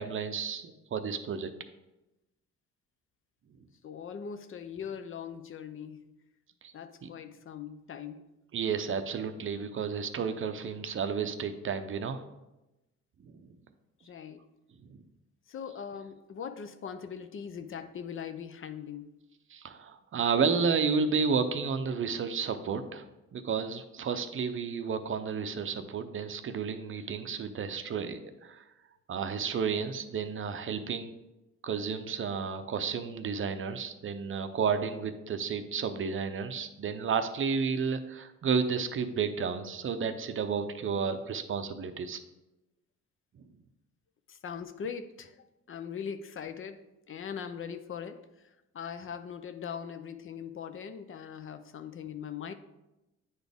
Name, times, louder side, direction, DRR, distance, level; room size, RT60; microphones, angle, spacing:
voice 1, 0.0-1.5 6.6-6.7 7.0-7.1 8.5-12.2 13.2-13.3 14.9-15.0 19.5-23.1 23.3-28.6 29.1-31.1 31.6-42.2, right 6 dB, 45° right, 9 dB, 0.6 m, -31 dB
voice 2, 3.8-6.0 6.7-8.2 14.0-14.5 15.5-19.1 44.3-48.5 48.7-52.5, left 7 dB, 45° left, 9 dB, 0.5 m, -41 dB
9.3 x 4.1 x 3.5 m, 0.97 s
cardioid pair, 90°, 30 cm